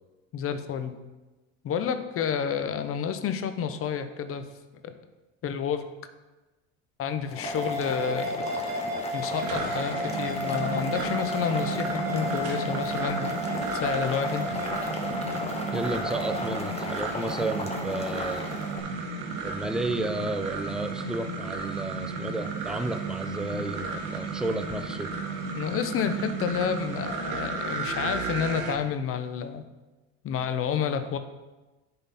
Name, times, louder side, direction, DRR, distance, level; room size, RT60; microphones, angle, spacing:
voice 1, 0.3-0.9 1.6-4.4 4.8-5.0 5.4-5.8 7.0-8.7 9.1-13.3 13.7-14.5 25.5-29.6 30.2-31.2, left 7 dB, 40° left, 9 dB, 0.7 m, -30 dB
Boiling, 7.2-18.8, left 3 dB, 20° left, 1.0 m, -36 dB
sound 1, 7.4-16.5, equal, 75° right, 1.7 m, -34 dB
sound 2, 9.3-28.8, right 4 dB, 55° right, 1.3 m, -33 dB
voice 2, 15.7-18.5 19.4-25.1, right 2 dB, ahead, 9 dB, 0.3 m, -32 dB
10.5 x 3.9 x 4.1 m, 1.1 s
supercardioid pair, 105°, 35 cm